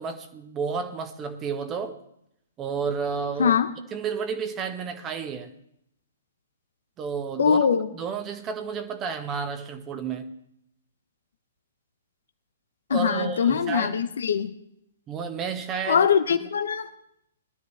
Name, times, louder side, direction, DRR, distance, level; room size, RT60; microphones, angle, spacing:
voice 1, 0.0-2.0 2.6-3.6 3.9-5.5 7.0-7.6 7.9-10.3 12.9-14.1 15.1-16.1, right 6 dB, 25° right, 8 dB, 1.5 m, -31 dB
voice 2, 3.4-3.7 7.4-7.9 12.9-14.5 15.9-16.9, left 7 dB, 65° left, 9 dB, 0.9 m, -22 dB
20.5 x 12.5 x 3.4 m, 0.76 s
figure-of-eight pair, 125°, 0 cm